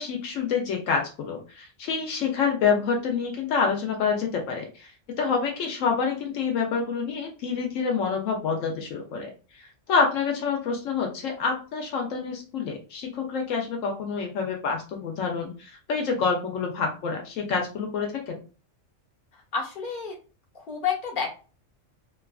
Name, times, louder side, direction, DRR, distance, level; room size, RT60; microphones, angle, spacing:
voice 1, 0.0-4.9 5.2-18.3, left 5 dB, 80° left, 2 dB, 1.0 m, -27 dB
voice 2, 19.3-20.1 20.5-21.3, left 6 dB, 45° left, -2 dB, 1.1 m, -30 dB
2.8 x 2.3 x 2.3 m, 0.35 s
omnidirectional pair, 1.3 m